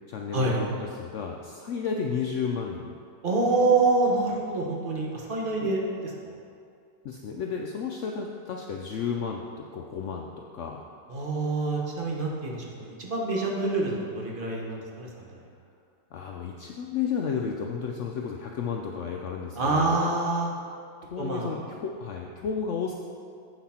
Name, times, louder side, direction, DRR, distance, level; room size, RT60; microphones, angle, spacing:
voice 1, 0.1-2.9 5.6-5.7 7.0-10.3 10.5-10.8 16.1-19.9 21.0-22.9, left 6 dB, 80° left, 1 dB, 0.6 m, -32 dB
voice 2, 3.2-6.1 11.1-15.3 19.6-20.5 21.2-21.5, right 3 dB, 35° right, -2 dB, 1.0 m, -26 dB
7.9 x 5.9 x 4.2 m, 2.4 s
omnidirectional pair, 1.8 m